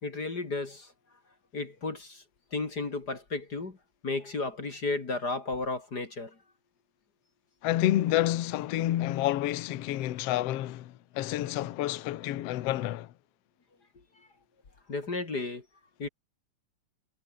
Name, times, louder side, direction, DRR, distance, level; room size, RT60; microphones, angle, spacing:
voice 1, 0.0-0.9 1.5-2.2 2.5-3.8 4.0-6.3 14.9-15.6 16.0-16.1, left 3 dB, 30° left, 2.9 m, -33 dB
voice 2, 7.6-13.1, left 14 dB, 60° left, 1.8 m, -29 dB
omnidirectional pair, 3.6 m